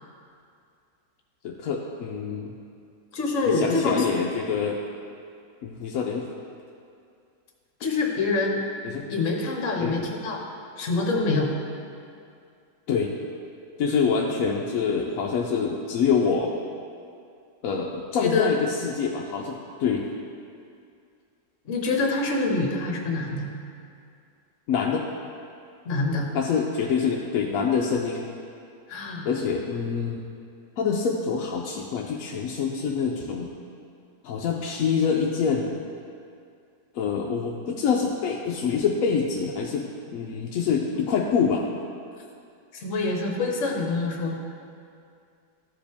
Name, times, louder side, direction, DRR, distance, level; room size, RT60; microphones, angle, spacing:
voice 1, 1.4-2.5 3.5-4.8 5.6-6.3 8.8-9.1 9.8-10.0 12.9-13.1 13.8-16.5 17.6-20.1 24.7-25.0 26.3-28.2 29.2-30.2 30.8-33.5 34.2-35.8 36.9-39.9 40.1-41.6, left 6 dB, 70° left, -1 dB, 0.9 m, -26 dB
voice 2, 3.1-4.1 7.8-8.6 9.1-10.4 10.8-11.5 18.2-18.5 21.6-23.5 25.8-26.3 28.9-29.3 42.7-44.4, left 3 dB, 50° left, 0 dB, 1.2 m, -25 dB
13.5 x 5.0 x 3.5 m, 2.4 s
omnidirectional pair, 1.8 m